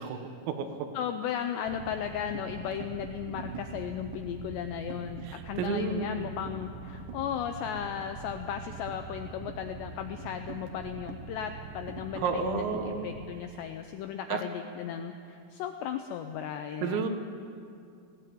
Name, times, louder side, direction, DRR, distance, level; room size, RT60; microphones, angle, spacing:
voice 1, 0.0-0.9 5.3-6.3 12.2-13.1 14.3-14.4 16.8-17.1, right 5 dB, 90° right, 6 dB, 4.0 m, -32 dB
voice 2, 0.9-17.1, left 9 dB, 85° left, 6 dB, 2.5 m, -36 dB
sound 1, 1.7-13.4, right 5 dB, 70° right, 3.3 m, -43 dB
18.5 x 16.5 x 8.6 m, 2.4 s
omnidirectional pair, 5.8 m